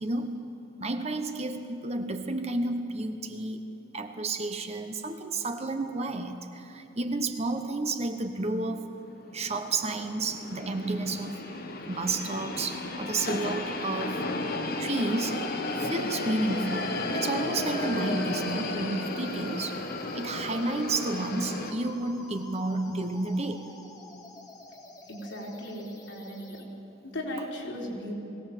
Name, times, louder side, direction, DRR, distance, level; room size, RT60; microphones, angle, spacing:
voice 1, 0.0-0.4 0.8-3.6 3.9-8.9 9.3-11.4 11.9-14.3 14.8-15.5 15.8-19.8 20.1-23.7, right 2 dB, 35° right, 7 dB, 1.0 m, -31 dB
sound 1, 9.1-21.7, left 2 dB, 50° left, 1.6 m, -34 dB
sound 2, 16.6-26.6, left 2 dB, 20° left, 1.6 m, -46 dB
voice 2, 25.1-26.6 27.0-28.1, equal, 70° left, -3 dB, 4.1 m, -37 dB
21.5 x 17.5 x 7.5 m, 3.0 s
head